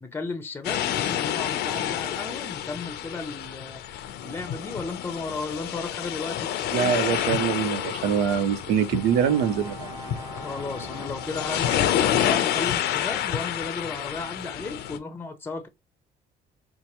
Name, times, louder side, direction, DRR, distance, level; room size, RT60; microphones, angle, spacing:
voice 1, 0.0-6.5 10.4-15.7, left 3 dB, 15° left, 0.6 m, -34 dB
sound 1, 0.6-15.0, left 11 dB, 75° left, 0.6 m, -29 dB
voice 2, 6.7-10.0, right 8 dB, 85° right, 0.6 m, -24 dB
Brass instrument, 8.2-12.3, right 2 dB, 20° right, 0.8 m, -44 dB
4.5 x 2.1 x 2.8 m
cardioid pair, 110°, 17 cm